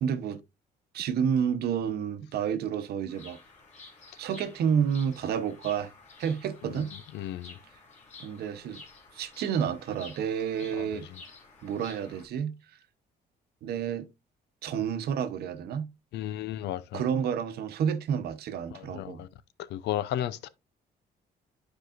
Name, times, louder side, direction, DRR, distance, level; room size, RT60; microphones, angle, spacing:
voice 1, 0.0-0.4 0.9-3.4 4.2-5.9 6.2-6.9 8.2-8.8 9.1-11.1 11.6-12.5 13.6-14.1 14.6-15.9 16.9-19.2, right 8 dB, 65° right, 1.0 m, -30 dB
Bird vocalization bird call bird song, 3.1-12.2, left 3 dB, 40° left, 2.5 m, -51 dB
voice 2, 7.1-7.5 16.1-17.0 18.7-19.3 19.7-20.5, left 12 dB, 80° left, 0.6 m, -33 dB
11.5 x 4.8 x 2.5 m
cardioid pair, 165°, 17 cm